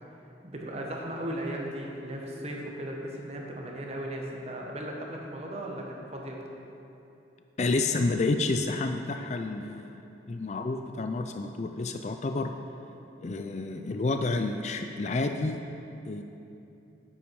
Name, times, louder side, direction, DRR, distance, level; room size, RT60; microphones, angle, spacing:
voice 1, 0.4-6.4, right 1 dB, 35° right, -1 dB, 1.3 m, -36 dB
voice 2, 7.6-10.0 10.3-12.5 13.2-15.6 16.1-16.2, left 3 dB, 40° left, 6 dB, 0.4 m, -29 dB
10.0 x 8.6 x 4.7 m, 2.8 s
head